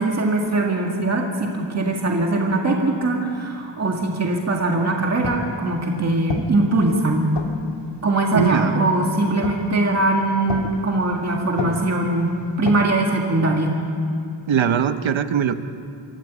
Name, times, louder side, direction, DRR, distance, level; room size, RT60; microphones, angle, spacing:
voice 1, 0.0-7.3 8.0-13.8, right 2 dB, 35° right, 0 dB, 2.0 m, -21 dB
sound 1, 5.0-12.8, left 4 dB, 65° left, 1.8 m, -34 dB
voice 2, 8.3-8.8 14.5-15.5, right 8 dB, 85° right, 10 dB, 1.1 m, -20 dB
24.5 x 14.5 x 8.5 m, 2.4 s
wide cardioid pair, 165°, 45 cm